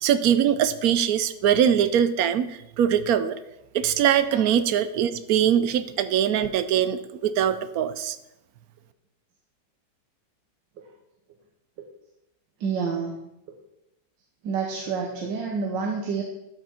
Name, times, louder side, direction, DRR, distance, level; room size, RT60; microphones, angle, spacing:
voice 1, 0.0-3.4 3.7-8.2, right 9 dB, 70° right, 12 dB, 0.9 m, -22 dB
voice 2, 12.6-13.2 14.4-16.2, right 5 dB, 85° right, 1 dB, 1.7 m, -28 dB
12.5 x 6.0 x 4.3 m, 0.88 s
omnidirectional pair, 1.9 m